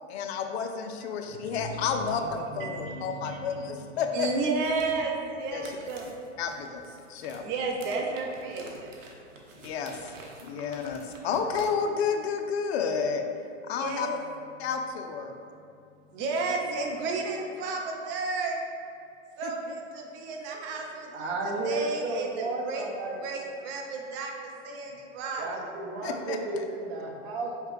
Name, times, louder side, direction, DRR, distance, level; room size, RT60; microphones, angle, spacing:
voice 1, 0.1-4.3 5.5-5.6 6.4-6.8 7.1-7.4 9.6-10.1 10.4-13.2 13.7-14.1 14.6-15.3 19.4-19.5 26.0-26.6, left 6 dB, 55° left, 5 dB, 0.6 m, -31 dB
voice 2, 1.2-6.1 7.4-8.9 11.3-11.5 13.8-14.2 16.1-18.6 19.4-22.9 23.1-25.7, right 3 dB, 30° right, 1 dB, 0.6 m, -33 dB
sound 1, 4.4-11.7, right 2 dB, 85° right, 0.9 m, -50 dB
voice 3, 21.1-23.2 25.4-27.7, right 2 dB, 55° right, 0 dB, 1.0 m, -33 dB
4.9 x 3.2 x 3.2 m, 2.6 s
hypercardioid pair, 115°, 38 cm